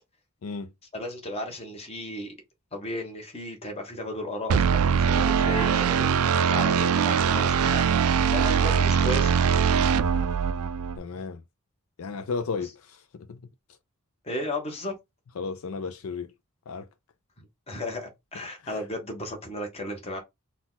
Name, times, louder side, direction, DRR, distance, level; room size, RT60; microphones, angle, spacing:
voice 1, 0.9-2.3 2.7-6.1 6.4-9.3 12.5-12.7 14.2-14.9 17.7-20.2, left 1 dB, 25° left, 1.2 m, -34 dB
sound 1, 4.5-11.0, right 6 dB, 80° right, 0.4 m, -22 dB
voice 2, 10.9-11.4 12.0-13.4 15.4-16.3 16.7-16.9 18.6-18.8, left 4 dB, 70° left, 0.4 m, -34 dB
4.0 x 2.4 x 3.9 m
head